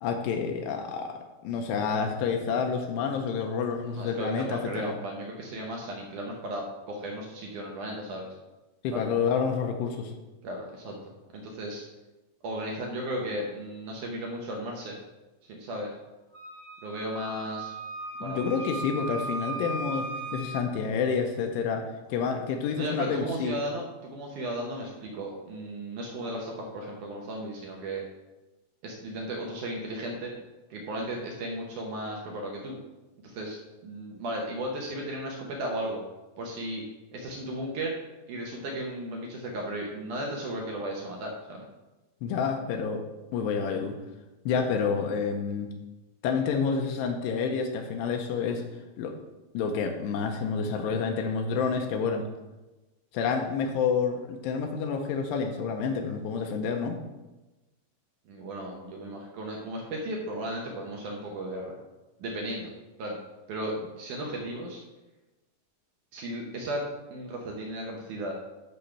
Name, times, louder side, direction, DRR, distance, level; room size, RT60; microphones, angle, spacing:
voice 1, 0.0-4.9 8.8-10.1 18.2-21.8 22.1-23.6 42.2-43.0 43.3-43.9 44.5-45.7 46.2-48.6 49.0-49.2 49.5-52.2 53.1-57.0, left 6 dB, 85° left, 4 dB, 2.8 m, -29 dB
voice 2, 3.9-8.3 8.9-9.1 10.4-11.0 11.3-11.8 12.4-15.0 15.5-15.9 16.8-17.7 18.2-18.6 22.8-28.0 28.8-30.3 30.7-32.8 33.2-36.0 36.4-36.8 37.1-38.0 38.3-41.7 58.3-61.7 62.2-62.7 63.0-63.2 63.5-64.8 66.1-66.8 67.1-68.3, right 1 dB, 75° right, -1 dB, 1.9 m, -35 dB
Wind instrument woodwind instrument, 16.3-20.7, right 2 dB, 65° left, 0.9 m, -37 dB
12.5 x 5.7 x 3.3 m, 1.1 s
omnidirectional pair, 5.0 m